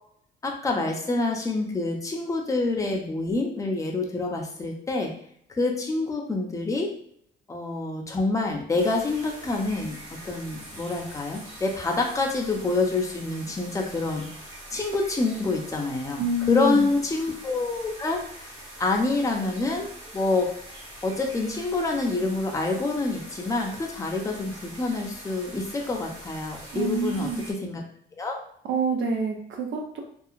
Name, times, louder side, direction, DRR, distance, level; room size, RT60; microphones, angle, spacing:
voice 1, 0.4-5.1 5.5-6.9 7.5-10.0 10.2-14.3 14.7-18.5 18.8-19.9 20.1-20.5 21.0-27.8 28.1-28.4, left 3 dB, 15° left, 0 dB, 0.6 m, -27 dB
sound 1, 8.8-27.5, right 1 dB, 25° right, 1.0 m, -44 dB
voice 2, 16.2-16.9 26.7-27.5 28.6-30.0, right 3 dB, 75° right, 2 dB, 0.7 m, -27 dB
2.8 x 2.3 x 2.4 m, 0.66 s
cardioid pair, 90°, 20 cm